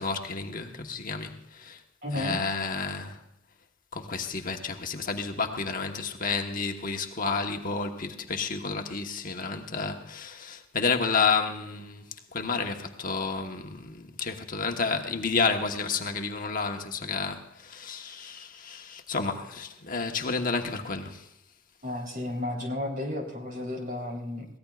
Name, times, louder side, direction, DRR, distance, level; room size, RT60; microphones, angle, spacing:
voice 1, 0.0-1.8 2.1-3.2 3.9-12.1 12.3-21.3, left 4 dB, 45° left, 1.1 m, -30 dB
voice 2, 2.0-2.4 21.8-24.5, left 1 dB, 45° right, 3.4 m, -33 dB
23.0 x 17.0 x 2.4 m
head